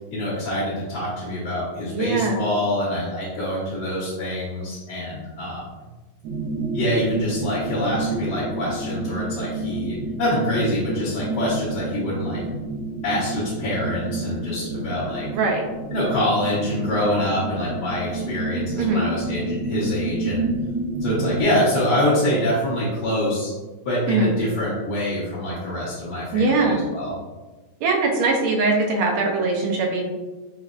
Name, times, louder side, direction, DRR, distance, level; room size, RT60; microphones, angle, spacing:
voice 1, 0.1-5.6 6.7-12.4 13.0-15.3 15.9-20.5 21.0-23.5 23.8-27.1, left 1 dB, 55° left, -10 dB, 1.5 m, -25 dB
voice 2, 1.9-2.4 15.3-15.6 18.8-19.0 24.1-24.3 26.3-26.8 27.8-30.0, right 3 dB, 90° right, 1 dB, 1.6 m, -21 dB
sound 1, 6.2-21.4, right 2 dB, 75° right, 1.0 m, -29 dB
5.0 x 3.1 x 2.4 m, 1.2 s
omnidirectional pair, 2.3 m